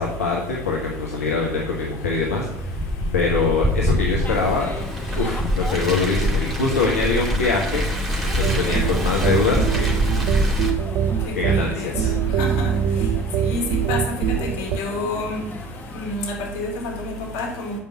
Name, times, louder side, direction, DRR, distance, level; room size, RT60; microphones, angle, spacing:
voice 1, 0.0-2.8 3.1-4.7 5.2-7.9 8.2-10.0 11.3-12.3, left 4 dB, 80° left, -1 dB, 1.1 m, -23 dB
Car, 2.6-10.7, equal, ahead, 2.6 m, -24 dB
sound 1, 4.2-16.2, left 2 dB, 25° left, 0.9 m, -37 dB
sound 2, 8.4-14.8, right 8 dB, 55° right, 0.5 m, -23 dB
voice 2, 12.4-12.7 13.4-14.0 14.6-15.4 15.9-17.7, left 2 dB, 60° left, 1 dB, 2.5 m, -28 dB
7.4 x 5.3 x 7.3 m, 0.85 s
figure-of-eight pair, 65°, 8 cm